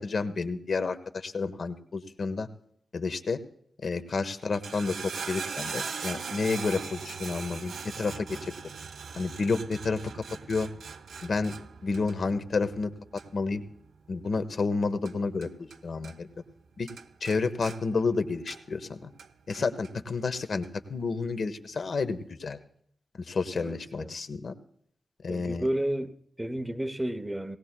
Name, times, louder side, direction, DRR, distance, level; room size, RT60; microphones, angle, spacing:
voice 1, 0.0-2.5 2.9-3.4 3.8-8.5 9.1-10.0 10.5-10.7 11.2-11.5 11.8-12.9 13.3-13.6 14.1-16.3 16.8-16.9 17.2-19.1 19.5-22.6 23.2-24.5 25.2-25.6, left 4 dB, 55° left, 1.0 m, -30 dB
sound 1, 4.4-16.6 16.9-18.8 19.2-19.9 20.6-20.7, right 6 dB, 85° right, 0.5 m, -40 dB
voice 2, 23.5-24.1 25.3-27.6, right 1 dB, 10° right, 0.7 m, -32 dB
18.5 x 18.5 x 2.2 m
wide cardioid pair, 145°, 0 cm